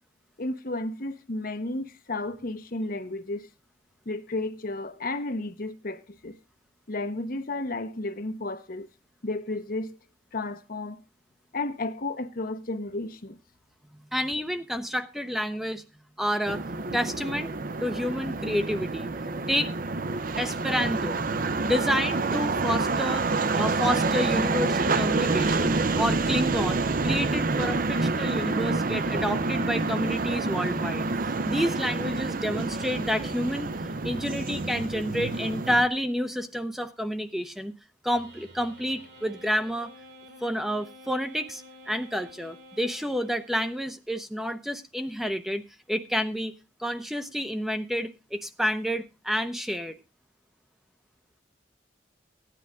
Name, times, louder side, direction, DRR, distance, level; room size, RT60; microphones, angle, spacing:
voice 1, 0.4-3.5 4.1-6.4 6.9-8.9 9.2-10.0 10.3-11.0 11.5-13.4, left 2 dB, 55° left, 1.0 m, -32 dB
voice 2, 14.1-15.8 16.2-16.6 16.9-19.1 19.5-19.7 20.4-21.2 21.6-23.3 23.5-33.7 34.0-37.7 38.0-39.9 40.4-45.6 45.9-46.5 46.8-50.0, equal, ahead, 0.7 m, -29 dB
sound 1, 16.5-35.9, right 3 dB, 50° right, 0.7 m, -28 dB
sound 2, 38.1-43.9, equal, 70° right, 3.6 m, -50 dB
15.5 x 10.0 x 3.6 m
head